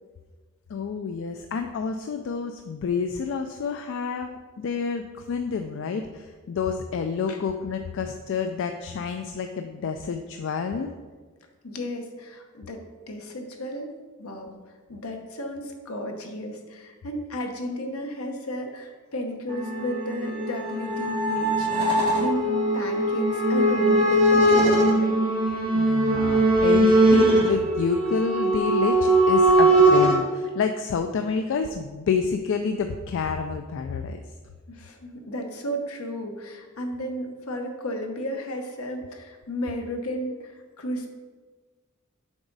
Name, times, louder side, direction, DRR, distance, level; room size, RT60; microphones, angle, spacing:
voice 1, 0.7-10.9 25.7-34.2, left 5 dB, 60° left, 6 dB, 0.4 m, -28 dB
voice 2, 11.6-12.8 13.1-13.9 14.2-14.6 14.9-25.2 34.7-41.1, equal, 80° left, 4 dB, 1.0 m, -33 dB
sound 1, 19.5-30.2, right 1 dB, 25° right, 2.1 m, -20 dB
7.1 x 4.9 x 4.0 m, 1.4 s
head